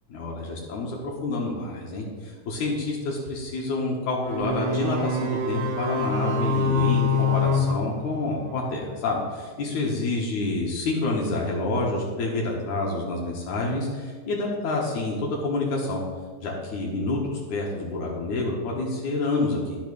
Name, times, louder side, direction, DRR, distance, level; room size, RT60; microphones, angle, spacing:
voice 1, 0.1-16.0 16.4-19.8, left 2 dB, 80° left, -3 dB, 2.8 m, -28 dB
sound 1, 4.2-8.7, left 3 dB, 75° right, 2.9 m, -25 dB
11.0 x 6.4 x 6.3 m, 1.5 s
omnidirectional pair, 3.4 m